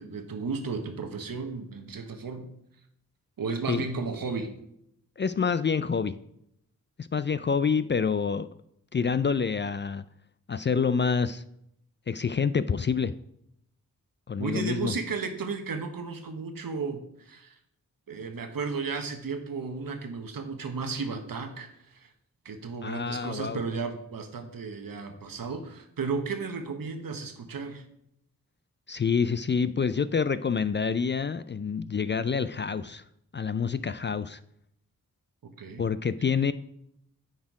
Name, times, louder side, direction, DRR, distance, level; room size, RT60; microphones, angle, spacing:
voice 1, 0.0-2.5 3.4-4.6 14.4-17.6 18.1-22.1 22.4-27.8 35.4-35.8, right 4 dB, 75° right, 6 dB, 1.1 m, -34 dB
voice 2, 5.2-6.2 7.0-8.5 8.9-10.0 10.5-11.4 12.1-13.1 14.3-14.9 22.8-23.6 28.9-33.0 33.3-34.4 35.8-36.5, left 6 dB, 35° left, 14 dB, 0.4 m, -27 dB
9.4 x 4.4 x 4.8 m, 0.75 s
cardioid pair, 40°, 35 cm